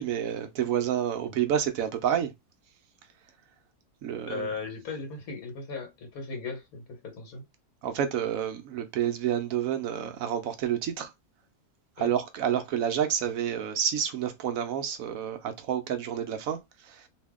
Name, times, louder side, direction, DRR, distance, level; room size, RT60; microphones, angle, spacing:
voice 1, 0.0-2.3 4.0-4.5 7.8-11.1 12.0-17.1, right 9 dB, 70° right, 0.9 m, -29 dB
voice 2, 4.3-7.5 12.0-12.1, left 4 dB, 70° left, 1.5 m, -37 dB
2.7 x 2.6 x 3.5 m
omnidirectional pair, 1.6 m